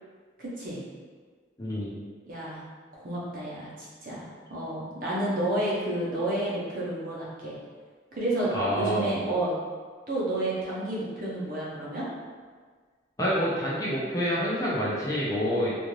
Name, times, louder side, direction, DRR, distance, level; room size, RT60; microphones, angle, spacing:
voice 1, 0.4-0.8 2.3-2.6 3.0-7.6 8.1-9.5 10.1-12.1, right 1 dB, 45° right, -7 dB, 0.7 m, -31 dB
voice 2, 1.6-1.9 8.5-9.2 13.2-15.8, equal, 20° left, -7 dB, 0.5 m, -27 dB
2.5 x 2.4 x 3.1 m, 1.5 s
head